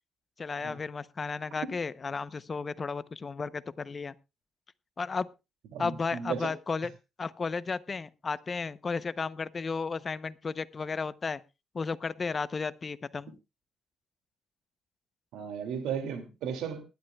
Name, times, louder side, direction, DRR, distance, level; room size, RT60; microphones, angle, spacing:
voice 1, 0.4-4.1 5.0-5.3 5.8-6.9 7.2-11.4 11.7-13.3, left 4 dB, 35° left, 15 dB, 0.7 m, -33 dB
voice 2, 5.7-6.5 15.3-16.8, right 7 dB, 85° right, 7 dB, 2.3 m, -35 dB
20.0 x 11.5 x 2.3 m, 0.27 s
cardioid pair, 90°, 0 cm